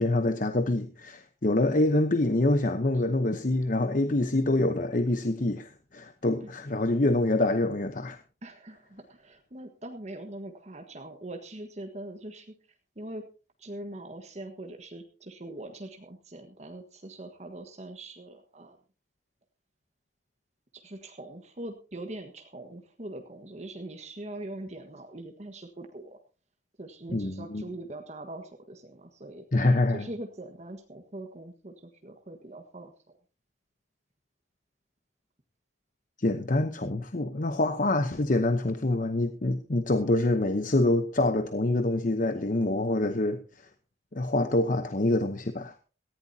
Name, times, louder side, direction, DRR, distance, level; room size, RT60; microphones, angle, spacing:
voice 1, 0.0-8.2 27.1-27.6 29.5-30.1 36.2-43.4 44.1-45.7, left 2 dB, 50° left, 0.9 m, -26 dB
voice 2, 8.4-12.5 12.9-13.2 13.6-18.8 20.7-26.2 26.8-29.4 29.9-32.9, right 1 dB, 40° right, 1.5 m, -42 dB
18.5 x 14.5 x 2.8 m
head